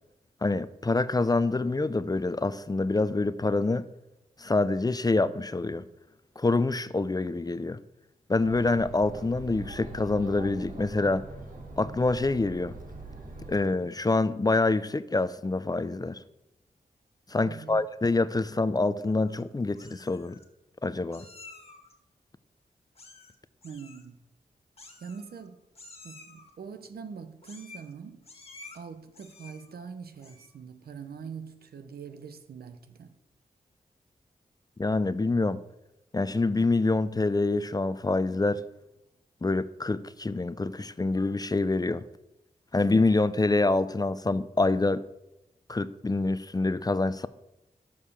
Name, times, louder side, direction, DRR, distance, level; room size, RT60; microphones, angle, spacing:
voice 1, 0.4-3.8 4.4-5.8 6.4-7.8 8.3-11.2 11.8-12.8 13.5-16.2 17.3-20.4 20.8-21.3 34.8-35.6 36.1-38.6 39.4-42.0 42.7-45.0 45.7-47.3, left 3 dB, 25° left, 0.5 m, -26 dB
Chatter, 8.4-13.5, right 2 dB, 60° right, 1.7 m, -43 dB
voice 2, 17.4-17.8 23.6-24.2 25.0-25.6 26.0-28.2 28.7-33.1, right 6 dB, 80° right, 0.7 m, -43 dB
Meow, 19.0-19.4 19.7-20.4 21.1-21.9 22.9-23.4 23.6-24.0 24.8-25.5 25.7-26.5 27.4-27.9 28.2-28.8 29.1-29.7 30.1-30.6, left 3 dB, 40° left, 1.7 m, -50 dB
6.5 x 5.5 x 6.8 m
cardioid pair, 45°, 16 cm